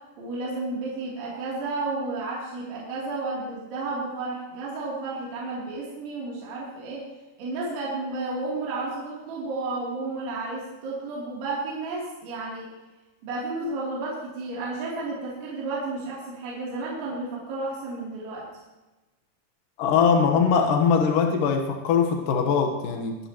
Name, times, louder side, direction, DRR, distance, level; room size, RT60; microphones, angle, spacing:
voice 1, 0.2-7.1 7.4-12.7 13.2-18.5, right 3 dB, 75° right, -6 dB, 5.5 m, -32 dB
voice 2, 19.8-23.2, left 6 dB, 75° left, 4 dB, 2.0 m, -21 dB
23.0 x 12.0 x 3.0 m, 1.1 s
omnidirectional pair, 5.5 m